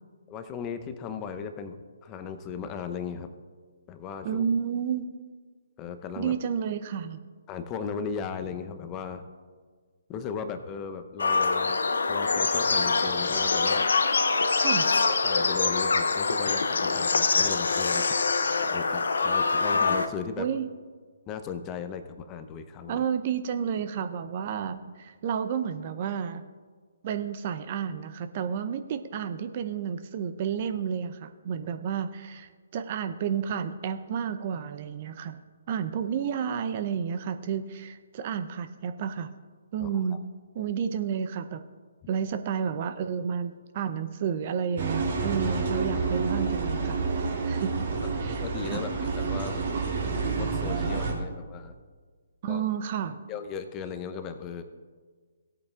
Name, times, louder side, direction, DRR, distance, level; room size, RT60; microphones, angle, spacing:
voice 1, 0.3-3.3 3.9-4.4 5.8-6.4 7.5-9.3 10.1-13.9 15.1-18.0 18.7-20.5 21.3-23.0 39.8-39.9 48.2-49.5 50.0-51.7 52.5-52.6 53.3-54.6, left 6 dB, 20° left, 9 dB, 0.7 m, -37 dB
voice 2, 4.2-5.1 6.2-7.2 14.6-14.9 20.4-20.7 22.9-26.5 27.0-35.4 35.7-39.3 39.7-40.2 40.5-41.6 42.1-47.9 48.2-48.8 52.4-53.2, right 7 dB, 40° right, 10 dB, 0.5 m, -31 dB
sound 1, 11.2-20.1, left 4 dB, 65° left, 0.6 m, -24 dB
sound 2, 44.8-51.1, right 4 dB, 55° right, 3.0 m, -29 dB
17.5 x 8.7 x 2.4 m, 1.5 s
figure-of-eight pair, 135°, 0 cm